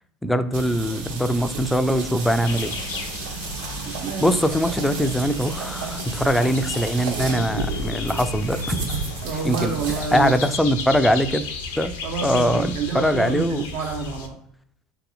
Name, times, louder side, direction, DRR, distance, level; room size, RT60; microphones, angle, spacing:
voice 1, 0.2-2.8 4.2-8.9 9.4-9.8 10.1-11.5 11.8-11.9 12.2-13.7, equal, 5° left, 11 dB, 0.3 m, -22 dB
sound 1, 0.5-10.5, right 3 dB, 70° right, 1.2 m, -32 dB
sound 2, 2.4-14.3, left 4 dB, 65° left, 0.4 m, -35 dB
voice 2, 3.9-4.4 9.2-10.3 12.0-14.4, right 5 dB, 55° right, 0 dB, 0.5 m, -28 dB
3.8 x 2.7 x 2.6 m, 0.69 s
figure-of-eight pair, 70°, 0 cm